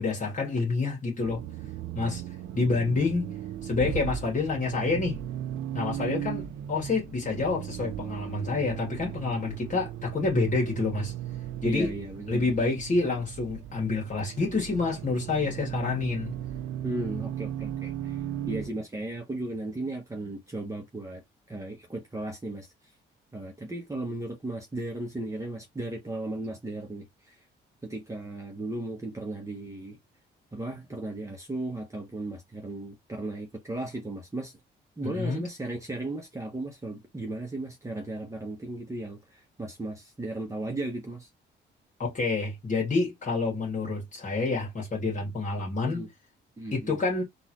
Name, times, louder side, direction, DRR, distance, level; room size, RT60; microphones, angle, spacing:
voice 1, 0.0-1.4 1.9-2.2 2.5-3.3 3.6-5.2 5.7-11.1 11.6-11.9 12.3-16.3 35.0-35.4 42.0-46.1 46.7-47.2, left 3 dB, 40° left, 1.8 m, -28 dB
Accelerating revving vroom, 1.2-18.7, right 11 dB, 90° right, 0.5 m, -36 dB
voice 2, 11.6-12.5 16.8-21.2 21.5-22.7 23.3-27.4 27.8-30.0 30.5-34.6 35.0-41.3 45.8-46.1 46.6-47.0, right 2 dB, 15° right, 1.1 m, -36 dB
3.8 x 2.6 x 3.1 m
cardioid pair, 90°, 20 cm